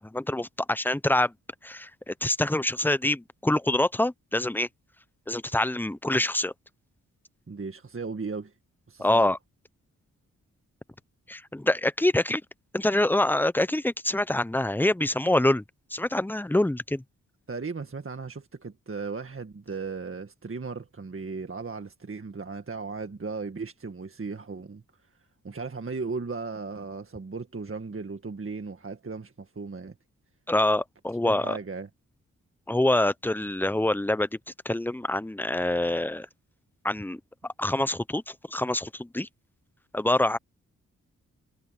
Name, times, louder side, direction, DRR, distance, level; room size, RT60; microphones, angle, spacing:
voice 1, 0.0-1.3 1.6-4.7 5.3-6.5 9.0-9.4 11.3-12.4 12.7-15.6 15.9-17.0 30.5-31.6 32.7-34.3 34.6-36.3 36.8-37.2 37.6-39.3 39.9-40.4, left 1 dB, 5° left, 0.9 m, -25 dB
voice 2, 7.5-8.5 8.9-9.3 17.5-24.8 25.4-30.0 31.2-31.9, right 4 dB, 40° right, 1.8 m, -36 dB
cardioid pair, 45°, 33 cm